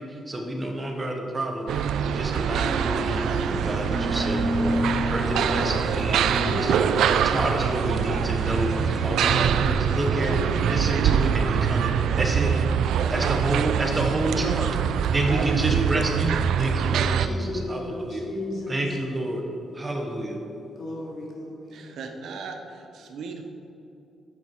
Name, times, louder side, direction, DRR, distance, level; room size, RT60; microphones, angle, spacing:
voice 1, 0.0-4.8 5.1-6.7 7.1-12.5 13.1-14.7 15.1-18.2 18.7-19.4 19.7-20.4, right 1 dB, 20° right, 2 dB, 1.1 m, -29 dB
sound 1, 1.7-17.3, right 8 dB, 85° right, 0.4 m, -24 dB
sound 2, 2.4-9.5, left 1 dB, 10° left, 1.9 m, -31 dB
voice 2, 5.3-5.6 6.4-7.3 9.2-11.0 13.1-13.6 14.0-14.8 17.1-18.9 20.8-22.2, left 2 dB, 60° left, -3 dB, 2.4 m, -36 dB
voice 3, 6.0-6.5 12.9-13.1 15.2-16.0 21.7-23.4, right 4 dB, 70° right, 4 dB, 1.0 m, -34 dB
10.0 x 8.1 x 4.6 m, 2.7 s
wide cardioid pair, 160°, 0 cm